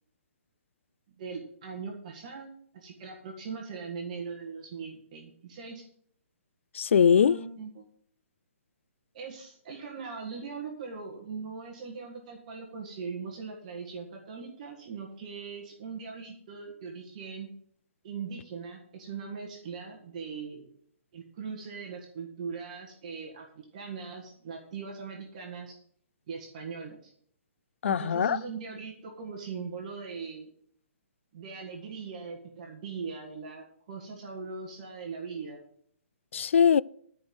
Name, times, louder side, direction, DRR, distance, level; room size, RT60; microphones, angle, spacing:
voice 1, 1.2-5.8 7.2-7.9 9.1-17.5 18.0-20.7 21.1-25.7 26.3-27.1 27.8-30.5 31.3-35.6, right 5 dB, 35° right, 1.7 m, -40 dB
voice 2, 6.7-7.4 27.8-28.4 36.3-36.8, left 7 dB, 65° left, 0.3 m, -21 dB
11.5 x 5.4 x 7.7 m
hypercardioid pair, 170°, 7 cm